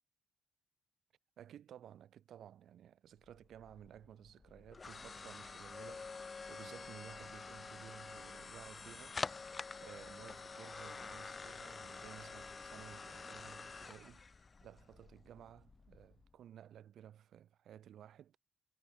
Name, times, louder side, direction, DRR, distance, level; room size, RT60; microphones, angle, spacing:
voice 1, 1.4-9.2 9.8-14.3 14.6-18.4, right 10 dB, 70° right, 6.1 m, -56 dB
sound 1, 3.3-16.3, left 4 dB, 30° left, 0.9 m, -48 dB
cardioid pair, 90°, 0 cm